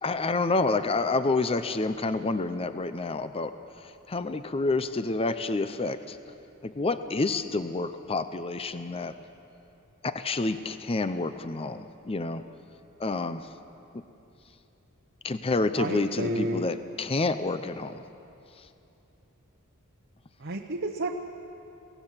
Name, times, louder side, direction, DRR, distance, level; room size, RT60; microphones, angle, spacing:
voice 1, 0.0-3.6 3.8-6.2 6.6-9.1 10.0-12.4 13.0-13.5 15.2-18.0, left 3 dB, 25° left, 11 dB, 0.6 m, -28 dB
voice 2, 15.8-16.6 20.4-21.1, right 2 dB, 55° right, 1 dB, 1.0 m, -30 dB
24.5 x 18.0 x 7.4 m, 2.8 s
head